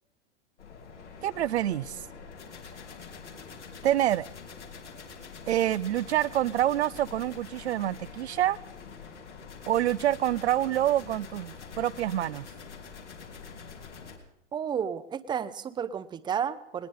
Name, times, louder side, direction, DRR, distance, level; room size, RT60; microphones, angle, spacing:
sound 1, 0.6-14.2, left 5 dB, 80° left, 3.1 m, -45 dB
voice 1, 1.2-2.0 3.8-4.3 5.5-8.6 9.7-12.5, right 12 dB, 70° right, 0.5 m, -27 dB
voice 2, 14.5-16.9, right 8 dB, 15° right, 0.6 m, -32 dB
20.0 x 19.0 x 3.8 m
figure-of-eight pair, 100°, 35 cm